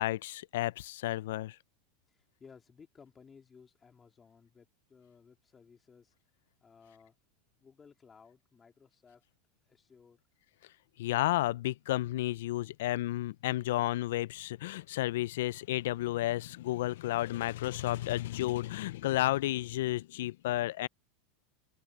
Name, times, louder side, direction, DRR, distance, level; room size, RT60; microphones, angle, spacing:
voice 1, 0.0-1.6 11.0-20.9, left 15 dB, 80° left, 0.3 m, -32 dB
voice 2, 2.1-6.1 6.6-7.1 7.6-9.2 9.7-10.2, left 6 dB, 15° left, 3.2 m, -58 dB
supercardioid pair, 155°, 0 cm